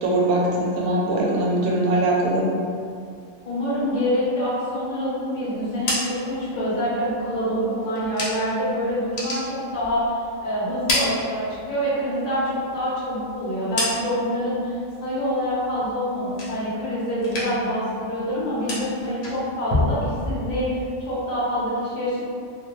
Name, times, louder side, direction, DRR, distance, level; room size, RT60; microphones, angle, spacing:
voice 1, 0.0-2.4, right 1 dB, 85° right, -3 dB, 1.0 m, -21 dB
voice 2, 3.5-14.7 15.0-20.8 21.1-22.2, equal, 45° left, -9 dB, 0.7 m, -26 dB
Single Barreled Shotgun Loading, 5.6-8.7 9.0-10.3 10.6-11.9 12.3-14.4 14.8-15.2 15.6-16.9 17.2-17.8 18.0-20.9, left 1 dB, 80° left, 0.3 m, -30 dB
2.4 x 2.2 x 2.9 m, 2.3 s
omnidirectional pair, 1.5 m